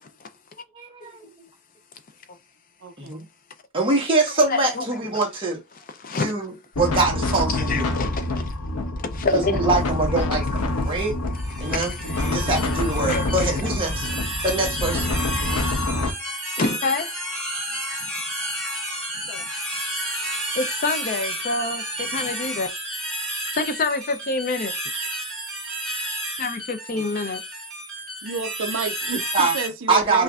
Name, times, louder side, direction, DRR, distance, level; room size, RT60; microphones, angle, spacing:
voice 1, 0.7-1.2 3.0-3.2 3.7-5.6 6.2-7.9 9.3-11.1 11.6-11.9 12.2-14.1 14.4-15.1 29.3-29.5 29.9-30.2, right 3 dB, 25° right, 1.2 m, -23 dB
voice 2, 2.8-3.3 26.9-27.0 28.2-30.2, right 4 dB, 55° right, 0.5 m, -30 dB
voice 3, 4.5-4.8 6.0-6.5 7.5-8.6 8.9-9.6 10.8-11.1 11.5-12.5 13.0-13.5 14.3-14.5 16.6-17.1 19.3-19.4 19.9-22.7 23.4-24.7 26.4-27.4, left 3 dB, 40° left, 0.4 m, -28 dB
sound 1, 6.7-16.1, left 2 dB, 85° left, 0.8 m, -26 dB
sound 2, 11.3-29.7, right 1 dB, ahead, 1.6 m, -31 dB
5.5 x 2.5 x 2.3 m
head